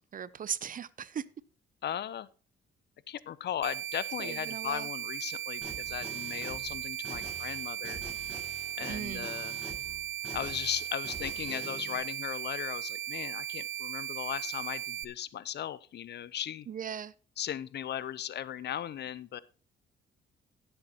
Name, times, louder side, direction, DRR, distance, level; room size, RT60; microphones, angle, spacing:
voice 1, 0.1-1.2 4.2-4.9 8.9-9.3 16.7-17.1, right 8 dB, 45° right, 0.6 m, -38 dB
voice 2, 1.8-2.3 3.1-8.0 8.8-9.6 10.3-16.7 17.4-19.4, left 10 dB, 60° left, 0.7 m, -37 dB
sound 1, 3.6-15.0, right 11 dB, 80° right, 0.7 m, -37 dB
sound 2, 5.6-12.0, right 1 dB, 5° right, 6.3 m, -46 dB
16.5 x 7.9 x 2.9 m
cardioid pair, 90°, 20 cm